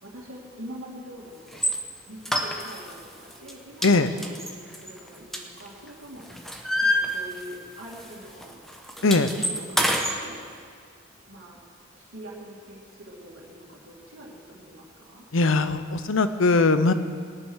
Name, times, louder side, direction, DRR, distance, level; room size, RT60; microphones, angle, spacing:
voice 1, 0.0-6.3 6.9-8.6 9.1-10.4 11.3-11.6 12.0-15.3, equal, 75° right, -5 dB, 2.5 m, -44 dB
sound 1, 1.5-1.8 2.2-3.0 3.3-3.5 3.8-5.9 6.2-7.7 7.9-8.1 8.4-10.2, equal, ahead, 0.9 m, -27 dB
voice 2, 15.3-16.9, left 3 dB, 65° left, 11 dB, 0.7 m, -20 dB
17.5 x 9.6 x 6.3 m, 2.2 s
head